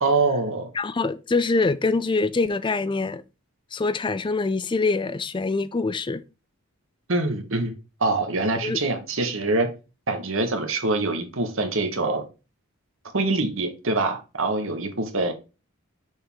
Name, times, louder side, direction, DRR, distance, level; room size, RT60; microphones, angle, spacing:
voice 1, 0.0-0.7 7.1-7.7 8.0-9.7 10.1-12.2 13.1-15.3, right 2 dB, 60° right, 1.4 m, -24 dB
voice 2, 0.8-3.2 3.7-6.2 8.6-8.8, left 3 dB, 20° left, 0.4 m, -24 dB
6.3 x 3.7 x 4.5 m
head